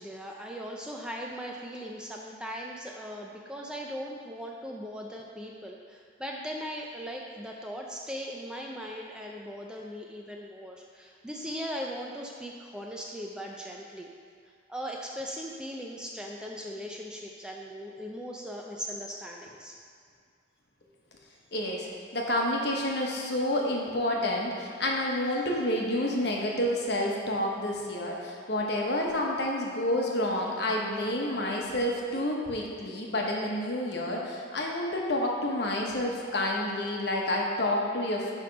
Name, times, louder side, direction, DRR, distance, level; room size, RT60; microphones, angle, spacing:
voice 1, 0.0-14.1 14.7-19.8, equal, 5° right, -1 dB, 0.4 m, -39 dB
voice 2, 21.5-21.9 22.1-38.3, left 1 dB, 60° left, -1 dB, 1.1 m, -29 dB
10.0 x 3.4 x 5.2 m, 2.2 s
head